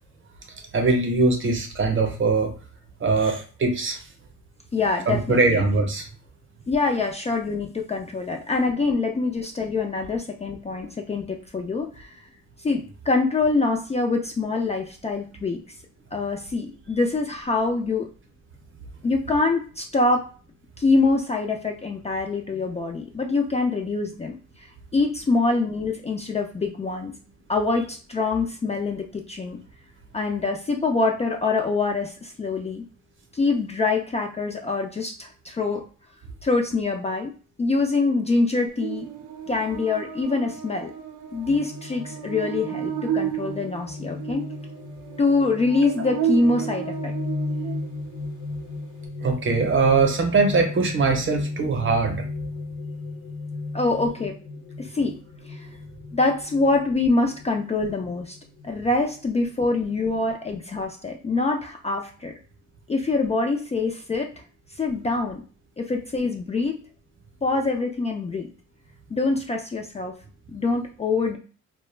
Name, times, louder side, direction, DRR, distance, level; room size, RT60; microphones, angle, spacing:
voice 1, 0.7-2.6 3.0-4.0 5.1-6.1 45.8-45.9 49.2-52.2, right 3 dB, 40° right, 3 dB, 0.7 m, -21 dB
voice 2, 4.7-5.6 6.7-12.2 12.6-15.6 16.1-18.1 19.0-20.3 20.8-24.3 24.9-27.1 27.5-29.6 30.1-32.8 33.3-35.8 36.4-37.3 37.6-39.1 39.5-40.9 41.3-44.4 45.2-47.1 53.7-54.3 54.8-55.2 55.5-55.7 56.1-58.4 58.6-62.3 62.9-64.3 64.8-65.4 65.8-66.8 67.4-68.5 69.1-70.1 70.5-71.4, left 3 dB, 20° left, 2 dB, 0.3 m, -24 dB
Buzz, 38.8-48.2, right 10 dB, 80° right, 0.5 m, -33 dB
sound 1, 41.5-60.7, left 3 dB, 80° left, 0.5 m, -36 dB
2.2 x 2.1 x 3.2 m, 0.38 s
cardioid pair, 90°, 30 cm